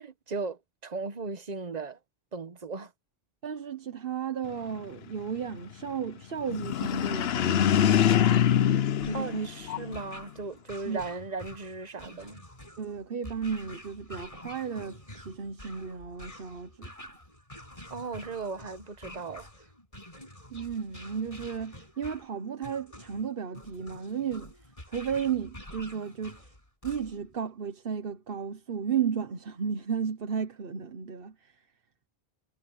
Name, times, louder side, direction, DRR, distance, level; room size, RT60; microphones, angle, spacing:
voice 1, 0.0-2.0 2.3-2.9 9.1-12.4 17.9-19.5, right 4 dB, 40° right, 1.1 m, -37 dB
voice 2, 3.4-8.3 9.0-9.5 10.9-11.0 12.8-16.9 20.5-24.5 24.9-26.4 26.8-31.5, right 7 dB, 60° right, 1.2 m, -34 dB
sound 1, 6.5-10.1, left 9 dB, 75° left, 0.9 m, -24 dB
sound 2, 9.0-27.4, left 1 dB, 35° left, 6.2 m, -48 dB
omnidirectional pair, 1.1 m